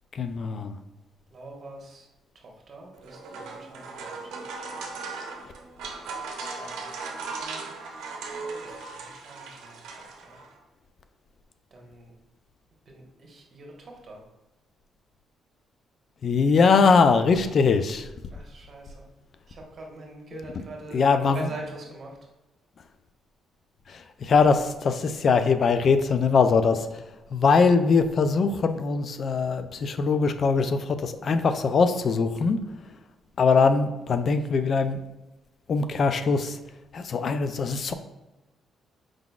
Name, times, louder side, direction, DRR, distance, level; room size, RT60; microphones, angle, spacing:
voice 1, 0.1-0.8 16.2-18.1 20.9-21.5 23.9-26.9 27.3-32.6 33.4-35.0 35.7-36.6 36.9-37.9, left 5 dB, 50° left, 9 dB, 0.3 m, -22 dB
voice 2, 1.3-2.1 2.3-4.3 4.6-4.8 6.6-7.6 8.6-9.8 10.2-10.4 11.7-12.1 12.9-14.2 18.3-19.1 19.5-21.0 21.3-22.2, right 2 dB, 45° right, 0 dB, 1.2 m, -44 dB
sound 1, 2.9-10.6, right 4 dB, 85° right, 0.7 m, -38 dB
4.8 x 3.8 x 2.3 m, 1.0 s
cardioid pair, 90°, 0 cm